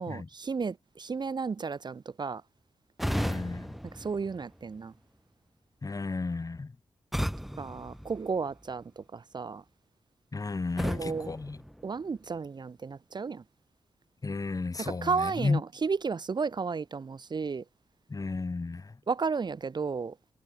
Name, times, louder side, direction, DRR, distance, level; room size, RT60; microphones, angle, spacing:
voice 1, 0.0-2.4 4.0-4.9 7.6-9.6 10.8-11.3 11.8-13.4 14.8-17.6 19.1-20.1, right 5 dB, 45° right, 1.0 m, -33 dB
sound 1, 3.0-5.0 7.1-8.8 10.8-12.4, equal, ahead, 1.2 m, -36 dB
voice 2, 3.1-3.7 5.8-6.7 10.3-11.6 14.2-15.6 18.1-19.0, left 3 dB, 35° left, 5.3 m, -33 dB
cardioid pair, 90°, 10 cm